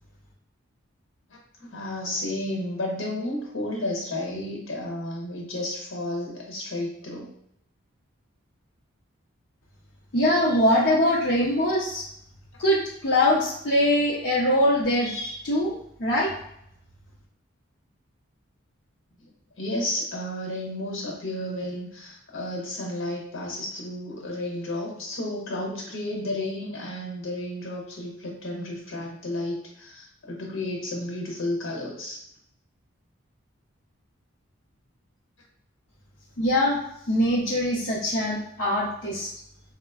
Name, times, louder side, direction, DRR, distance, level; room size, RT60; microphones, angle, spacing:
voice 1, 1.6-7.3 19.6-32.2, left 1 dB, 75° left, -1 dB, 0.9 m, -32 dB
voice 2, 10.1-12.0 12.6-15.7 16.0-16.3 36.4-36.8 37.1-39.3, left 1 dB, 50° left, -7 dB, 0.5 m, -22 dB
4.0 x 2.1 x 2.3 m, 0.73 s
head